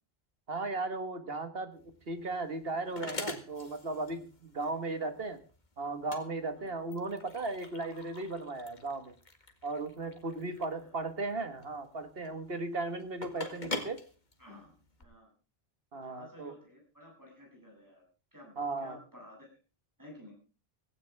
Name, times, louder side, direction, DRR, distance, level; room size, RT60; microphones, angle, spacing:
voice 1, 0.5-5.4 5.8-9.1 9.6-14.0 15.9-16.5 18.6-19.0, right 3 dB, 70° right, 9 dB, 2.0 m, -36 dB
sound 1, 1.7-15.0, left 2 dB, 45° left, 2.0 m, -45 dB
voice 2, 4.6-5.2 6.5-6.7 10.2-10.9 13.3-13.9 14.4-15.3 16.0-18.0 18.3-19.5 20.0-20.4, left 1 dB, 20° right, 0 dB, 7.9 m, -54 dB
17.0 x 16.0 x 3.6 m, 0.35 s
omnidirectional pair, 1.0 m